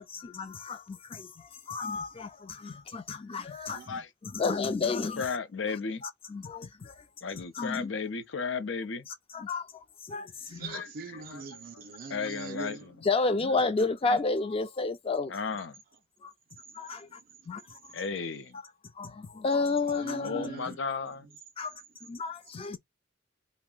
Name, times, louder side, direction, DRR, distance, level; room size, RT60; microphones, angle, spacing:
voice 1, 0.0-5.2 6.3-7.0 7.6-7.9 9.3-10.7 13.0-15.3 16.2-16.3 16.7-17.2 17.5-17.6 19.0-20.5 21.6-21.7 22.0-22.8, left 3 dB, 30° left, 0.4 m, -31 dB
voice 2, 5.2-6.0 7.2-9.1 10.7-11.4 12.1-12.9 15.3-15.8 17.9-18.6 20.2-21.3, left 5 dB, 80° left, 0.6 m, -34 dB
voice 3, 10.4-12.9 15.5-15.6 17.1-17.2 17.9-18.2 19.9-20.8, right 4 dB, 50° right, 0.4 m, -42 dB
2.5 x 2.1 x 3.7 m
head